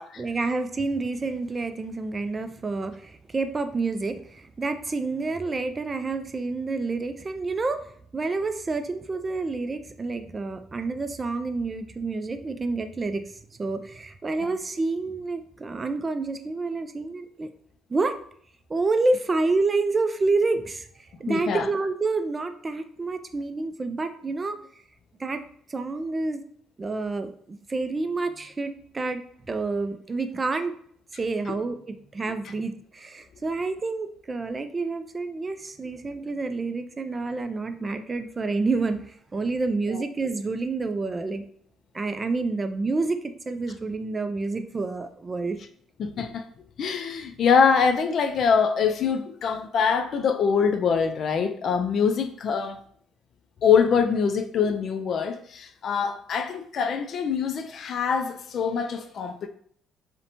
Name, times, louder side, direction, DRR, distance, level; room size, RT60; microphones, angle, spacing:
voice 1, 0.0-7.8 8.1-13.2 13.6-17.5 17.9-18.1 18.7-24.6 25.2-25.4 25.7-26.4 26.8-29.2 29.5-30.8 31.1-41.4 41.9-45.6, right 3 dB, 30° right, 0.3 m, -28 dB
voice 2, 21.3-21.7 39.9-40.0 46.0-46.4 46.8-52.8 53.6-59.5, left 6 dB, 55° left, 0.3 m, -24 dB
2.8 x 2.1 x 2.6 m
supercardioid pair, 80°, 0 cm